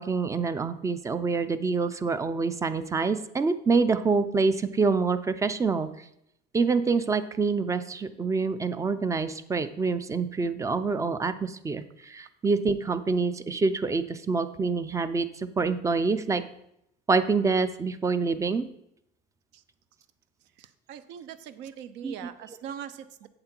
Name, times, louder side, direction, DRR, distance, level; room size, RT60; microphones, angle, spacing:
voice 1, 0.0-5.9 6.5-16.4 17.1-18.7 22.0-22.5, right 4 dB, 15° right, 12 dB, 0.5 m, -26 dB
voice 2, 20.6-23.3, right 9 dB, 65° right, 13 dB, 0.7 m, -41 dB
7.7 x 7.6 x 4.5 m, 0.79 s
cardioid pair, 130°, 20 cm